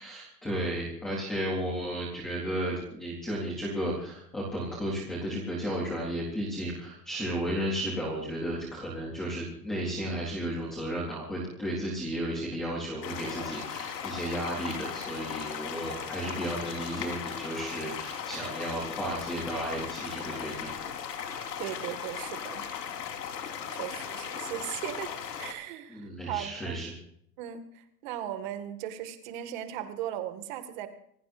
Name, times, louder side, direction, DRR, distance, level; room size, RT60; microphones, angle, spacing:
voice 1, 0.0-20.9 25.9-26.9, right 1 dB, ahead, -4 dB, 0.5 m, -33 dB
sound 1, 13.0-25.5, left 8 dB, 75° left, 4.1 m, -37 dB
voice 2, 21.6-22.7 23.7-26.9 27.4-30.9, right 11 dB, 30° right, 8 dB, 1.9 m, -38 dB
26.0 x 17.0 x 2.6 m, 0.69 s
hypercardioid pair, 170°, 50 cm